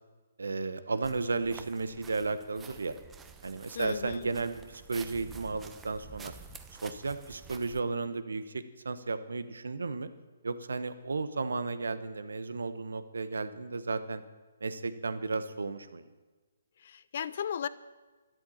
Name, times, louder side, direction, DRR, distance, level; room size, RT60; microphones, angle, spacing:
voice 1, 0.4-3.0 3.4-6.3 6.8-10.1 10.4-14.2 14.6-16.0, right 3 dB, 75° right, 12 dB, 1.1 m, -34 dB
sound 1, 1.0-7.8, right 5 dB, 10° right, 0.9 m, -50 dB
voice 2, 3.7-4.2 16.8-17.7, left 8 dB, 55° left, 16 dB, 0.5 m, -35 dB
13.0 x 11.5 x 7.2 m, 1.3 s
figure-of-eight pair, 140°, 0 cm